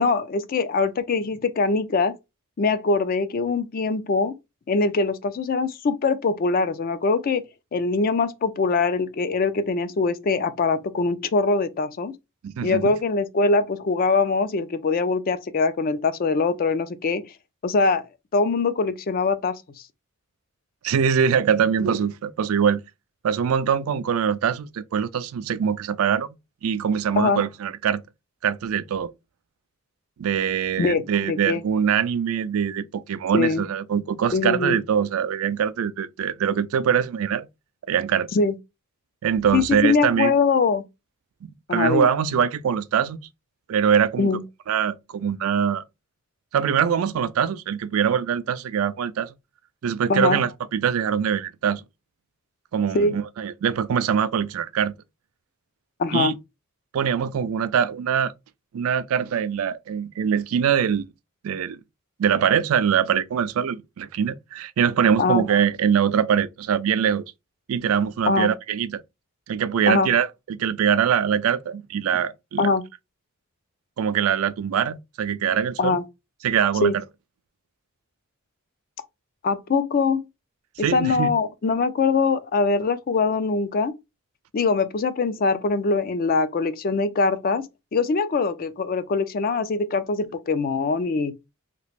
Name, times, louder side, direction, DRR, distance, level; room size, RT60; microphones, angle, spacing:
voice 1, 0.0-2.1 2.6-4.3 4.7-7.4 7.7-12.1 12.6-17.2 17.6-18.0 18.3-19.6 27.2-27.4 30.8-31.0 31.3-31.6 33.3-33.6 34.3-34.8 38.3-38.6 39.5-40.8 41.7-42.1 44.2-44.4 50.1-50.4 52.9-53.2 56.0-56.3 65.2-65.4 68.3-68.5 69.9-70.1 72.6-72.8 75.8-76.0 76.8-77.0 79.4-80.3 80.8-83.9 84.5-87.7 87.9-91.3, left 4 dB, 45° left, 0.4 m, -22 dB
voice 2, 12.4-12.8 20.8-22.8 23.2-26.3 26.6-28.0 28.4-29.1 30.2-37.5 37.9-38.3 39.2-40.3 41.4-43.2 43.7-44.3 44.7-45.8 46.5-49.3 49.8-51.8 52.7-54.9 56.1-56.4 56.9-58.3 58.7-61.1 61.4-61.8 62.2-67.2 67.7-69.0 69.5-72.7 74.0-76.0 76.4-77.0 80.8-81.3, right 7 dB, 80° right, 0.4 m, -23 dB
3.0 x 2.4 x 3.2 m
head